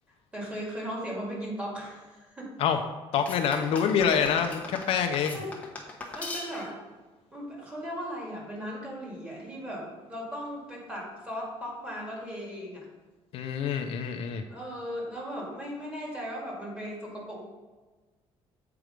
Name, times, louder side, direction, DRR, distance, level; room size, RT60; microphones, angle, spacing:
voice 1, 0.3-2.5 3.5-3.7 5.3-5.5 6.1-6.7 7.3-12.9 14.5-17.4, equal, 10° right, -4 dB, 2.1 m, -37 dB
voice 2, 3.1-5.4 13.3-14.4, left 7 dB, 65° left, 6 dB, 0.6 m, -26 dB
sound 1, 3.3-6.9, left 3 dB, 15° left, 1.0 m, -40 dB
7.7 x 4.8 x 5.1 m, 1.3 s
cardioid pair, 170°, 10 cm